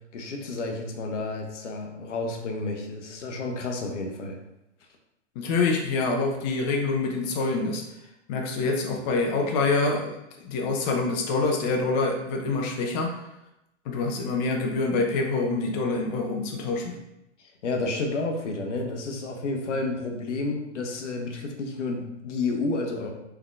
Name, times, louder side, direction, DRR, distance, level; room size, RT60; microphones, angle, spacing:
voice 1, 0.1-4.4 17.4-23.1, left 3 dB, 75° left, 3 dB, 0.7 m, -31 dB
voice 2, 5.4-7.8 8.3-13.2 13.9-17.0, left 3 dB, 35° left, 1 dB, 0.6 m, -26 dB
3.5 x 3.3 x 2.3 m, 0.88 s
hypercardioid pair, 115°, 37 cm